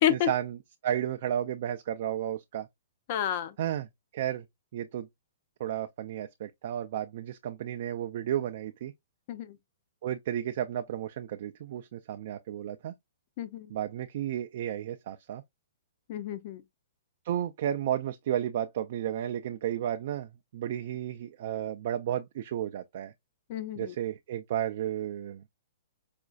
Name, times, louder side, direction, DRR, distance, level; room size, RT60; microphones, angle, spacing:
voice 1, 0.1-0.6 0.8-2.7 3.6-3.9 4.1-4.4 4.7-5.1 5.6-8.9 10.0-12.9 13.7-15.4 17.2-23.1 23.8-25.4, right 11 dB, 45° right, 0.3 m, -33 dB
voice 2, 3.1-3.5 9.3-9.5 13.4-13.7 16.1-16.6 23.5-23.9, left 11 dB, 35° left, 0.4 m, -29 dB
4.9 x 2.3 x 2.3 m
hypercardioid pair, 170°, 0 cm